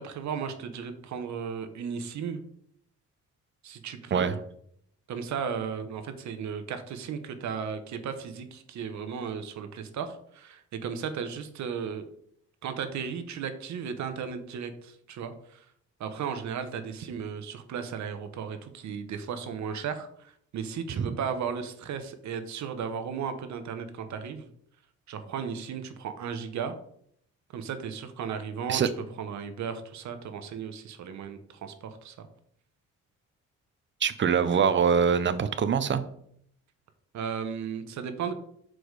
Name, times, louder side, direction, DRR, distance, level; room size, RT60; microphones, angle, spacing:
voice 1, 0.0-2.4 3.6-4.3 5.1-12.1 12.6-15.6 16.0-24.5 25.1-26.8 27.5-28.8 29.2-32.3 37.1-38.3, right 7 dB, 70° right, 9 dB, 1.0 m, -35 dB
voice 2, 34.0-36.0, right 6 dB, 40° right, 11 dB, 0.8 m, -24 dB
6.2 x 4.9 x 4.8 m, 0.67 s
cardioid pair, 90°, 30 cm